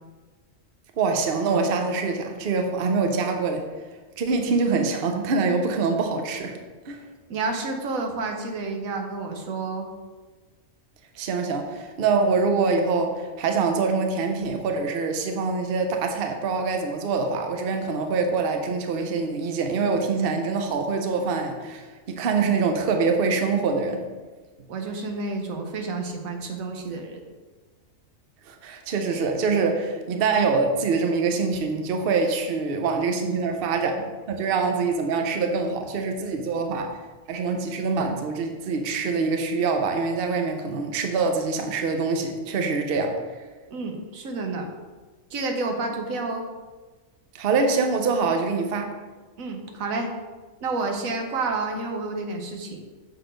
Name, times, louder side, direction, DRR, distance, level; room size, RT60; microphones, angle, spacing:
voice 1, 1.0-3.7 4.2-6.6 6.9-7.0 11.2-24.0 28.5-36.9 37.3-43.2 47.3-49.0, right 4 dB, 50° right, 4 dB, 0.8 m, -24 dB
voice 2, 7.3-9.9 24.7-27.3 43.7-44.7 45.3-46.5 49.4-50.1 50.6-52.8, right 3 dB, 85° right, 3 dB, 1.3 m, -30 dB
6.7 x 4.0 x 5.1 m, 1.3 s
omnidirectional pair, 1.4 m